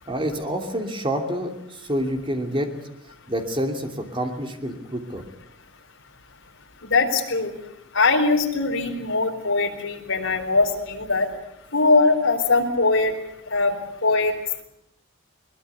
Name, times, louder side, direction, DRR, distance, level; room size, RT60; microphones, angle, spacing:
voice 1, 0.1-2.7 3.3-5.2, equal, 25° right, 4 dB, 2.8 m, -27 dB
voice 2, 6.8-7.5 7.9-11.3 11.7-13.1 13.5-13.7 14.0-14.3, left 3 dB, 65° left, 2 dB, 4.2 m, -21 dB
22.0 x 21.0 x 8.4 m, 0.78 s
head